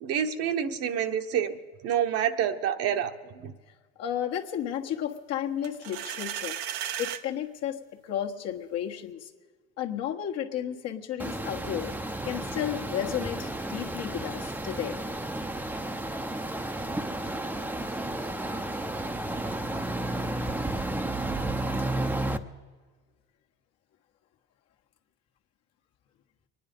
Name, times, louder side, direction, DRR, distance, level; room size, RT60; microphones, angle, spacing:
voice 1, 0.0-1.6 1.8-3.5, right 9 dB, 55° right, 7 dB, 1.1 m, -28 dB
voice 2, 4.0-6.6 7.0-9.3 9.8-11.9 12.2-15.0, left 10 dB, 60° left, 2 dB, 1.5 m, -33 dB
sound 1, 5.6-7.2, right 11 dB, 75° right, 1.0 m, -34 dB
sound 2, 11.2-22.4, right 1 dB, 5° right, 0.7 m, -32 dB
23.5 x 10.0 x 5.2 m, 1.5 s
supercardioid pair, 100°, 29 cm